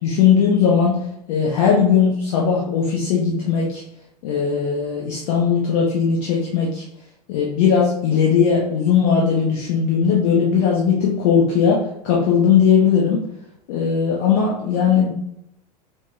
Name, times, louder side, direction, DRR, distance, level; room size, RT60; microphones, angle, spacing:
voice 1, 0.0-1.0 1.3-3.8 4.2-6.8 7.3-13.2 13.7-15.1, left 6 dB, 60° left, -4 dB, 1.0 m, -18 dB
5.8 x 3.0 x 2.4 m, 0.80 s
figure-of-eight pair, 85°, 21 cm